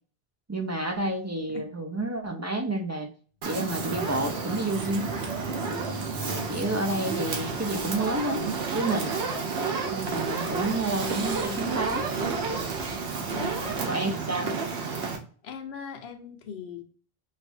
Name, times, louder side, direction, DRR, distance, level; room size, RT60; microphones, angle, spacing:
voice 1, 0.5-3.1 3.4-5.1 6.2-8.5 8.7-9.2 9.9-12.1 13.9-14.5, right 1 dB, 30° right, 4 dB, 0.3 m, -30 dB
sound 1, 3.4-13.9, right 1 dB, 45° right, 0.8 m, -43 dB
Fire, 3.4-15.2, right 4 dB, 80° right, 1.1 m, -31 dB
voice 2, 5.5-6.0 6.4-6.5 13.3-13.8 15.4-16.8, left 6 dB, 80° left, 7 dB, 0.9 m, -40 dB
5.2 x 2.4 x 2.5 m, 0.42 s
omnidirectional pair, 1.1 m